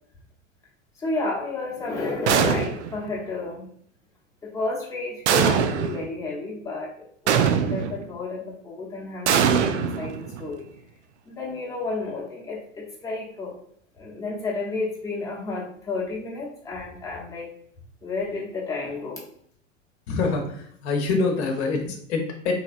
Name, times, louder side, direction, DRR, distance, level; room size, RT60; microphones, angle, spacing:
voice 1, 1.0-3.7 4.4-10.6 11.3-13.5 14.0-17.5 18.0-19.2, left 3 dB, 10° left, -5 dB, 0.8 m, -31 dB
sound 1, 2.3-3.0 5.3-6.0 7.3-8.0 9.3-10.5, right 7 dB, 60° right, 0.5 m, -22 dB
voice 2, 20.1-22.5, left 3 dB, 55° left, 3 dB, 0.8 m, -25 dB
3.1 x 2.8 x 2.5 m, 0.63 s
figure-of-eight pair, 85°, 39 cm